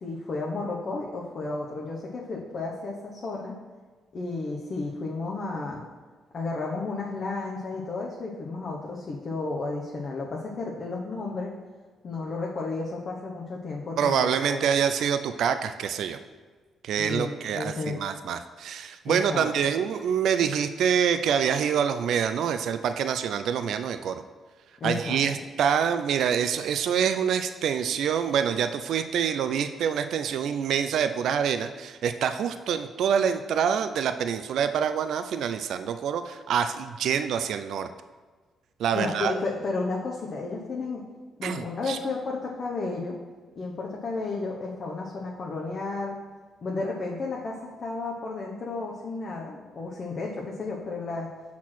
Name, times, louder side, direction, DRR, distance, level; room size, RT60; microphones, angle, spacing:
voice 1, 0.0-3.6 4.1-5.8 6.3-11.5 12.0-14.7 17.0-18.0 19.1-19.5 24.8-25.2 38.9-41.0 41.4-43.2 43.5-46.2 46.6-51.3, left 3 dB, 50° left, -2 dB, 1.0 m, -32 dB
voice 2, 14.0-16.2 16.8-24.2 24.8-37.9 38.8-39.3 41.4-42.0, right 7 dB, 70° right, 9 dB, 0.4 m, -26 dB
6.1 x 4.3 x 6.0 m, 1.4 s
cardioid pair, 90°, 0 cm